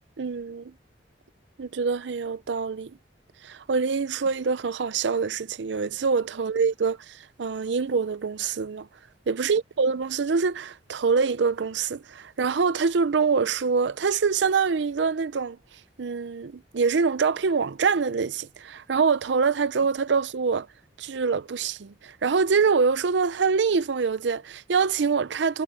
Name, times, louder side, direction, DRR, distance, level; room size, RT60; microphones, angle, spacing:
voice 1, 0.2-0.7 1.6-2.9 3.4-8.9 9.3-15.6 16.0-20.7 21.0-25.6, right 5 dB, 70° right, 0.5 m, -25 dB
head